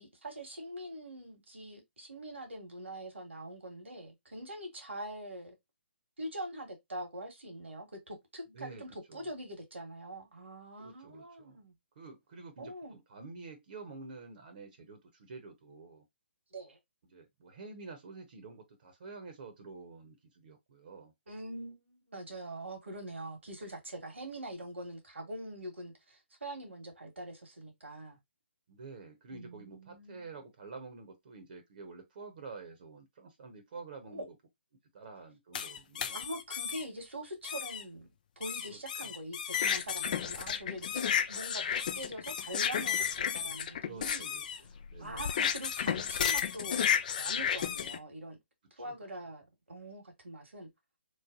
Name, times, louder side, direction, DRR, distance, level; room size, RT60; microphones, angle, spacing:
voice 1, 0.0-5.6 6.2-11.7 12.6-13.0 16.5-16.8 21.3-28.2 29.3-30.3 34.1-34.2 36.1-38.1 38.3-44.3 45.0-46.9 47.2-48.4 48.8-50.7, right 1 dB, 80° right, 1.6 m, -44 dB
voice 2, 8.5-8.8 9.1-9.3 10.8-11.6 12.0-16.0 17.1-21.1 28.7-34.3 34.9-36.2 38.7-39.1 43.8-45.3 48.8-48.9, right 4 dB, 45° right, 0.9 m, -49 dB
sound 1, 35.5-36.8 37.4-37.8 38.4-48.0, left 8 dB, 40° left, 0.4 m, -33 dB
3.2 x 2.1 x 3.8 m
figure-of-eight pair, 140°, 6 cm